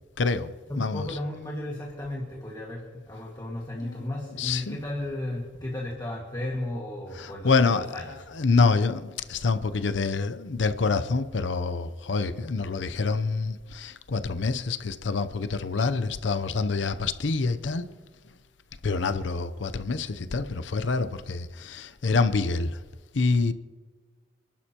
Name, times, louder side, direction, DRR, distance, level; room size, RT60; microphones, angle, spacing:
voice 1, 0.2-1.2 3.8-4.8 7.1-17.9 18.8-22.8 23.1-23.5, left 4 dB, 80° left, 0.7 m, -27 dB
voice 2, 0.7-8.0, left 1 dB, 20° left, 1.8 m, -34 dB
27.5 x 11.5 x 2.9 m
head